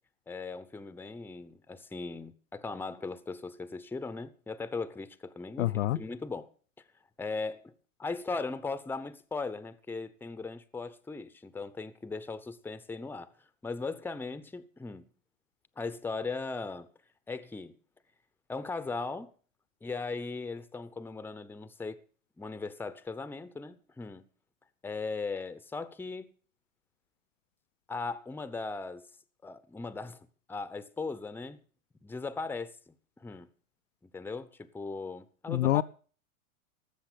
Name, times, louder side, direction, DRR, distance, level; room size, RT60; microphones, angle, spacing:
voice 1, 0.3-6.5 7.2-7.7 8.0-15.1 15.8-16.9 17.3-17.8 18.5-19.3 19.8-22.0 22.4-24.3 24.8-26.3 27.9-29.1 29.4-31.6 32.0-33.5 34.0-35.8, left 4 dB, 5° left, 0.9 m, -38 dB
voice 2, 5.6-6.0 35.5-35.8, left 14 dB, 65° left, 0.7 m, -26 dB
18.5 x 7.5 x 7.4 m
hypercardioid pair, 115°, 41 cm